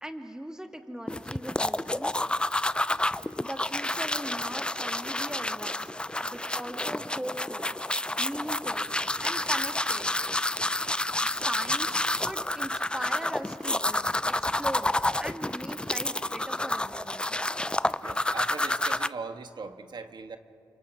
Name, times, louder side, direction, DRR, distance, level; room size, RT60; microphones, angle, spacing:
voice 1, 0.0-2.1 2.4-2.5 3.2-5.9 6.2-8.9 9.2-10.1 11.2-14.9 15.2-17.3, equal, 5° right, 4 dB, 2.4 m, -39 dB
sound 1, 1.1-19.1, left 1 dB, 10° left, 0.5 m, -29 dB
voice 2, 18.0-20.4, right 4 dB, 60° right, 8 dB, 1.6 m, -40 dB
29.0 x 25.0 x 6.1 m, 2.6 s
cardioid pair, 60°, 9 cm